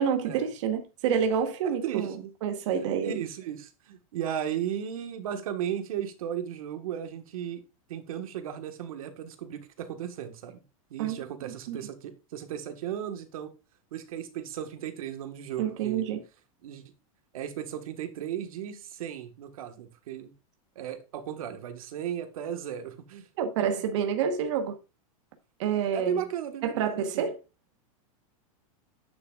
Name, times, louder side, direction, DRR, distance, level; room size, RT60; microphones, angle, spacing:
voice 1, 0.0-2.2 2.4-3.2 11.0-11.2 11.4-11.8 15.6-16.2 23.4-24.8 25.6-26.2 26.6-27.4, right 7 dB, 55° right, 1.2 m, -28 dB
voice 2, 1.8-2.3 2.7-7.6 7.9-10.6 10.9-13.5 13.9-16.0 16.6-16.8 17.3-20.3 20.7-23.3 23.7-23.8 25.9-27.3, right 10 dB, 80° right, 1.5 m, -35 dB
9.0 x 7.0 x 2.4 m
supercardioid pair, 170°, 18 cm